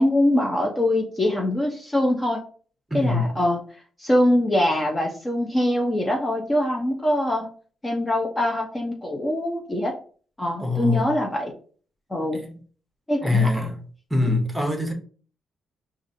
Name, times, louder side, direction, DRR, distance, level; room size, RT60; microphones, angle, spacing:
voice 1, 0.0-2.4 2.9-3.6 4.0-7.5 7.8-9.9 10.4-11.5 12.1-12.4 13.1-13.7 14.2-14.3, left 1 dB, 20° left, 0.7 m, -23 dB
voice 2, 2.9-3.3 10.6-11.1 12.3-12.5 13.2-13.8 14.1-14.9, left 2 dB, 10° right, 1.0 m, -23 dB
4.8 x 2.5 x 2.7 m
cardioid pair, 90°, 0 cm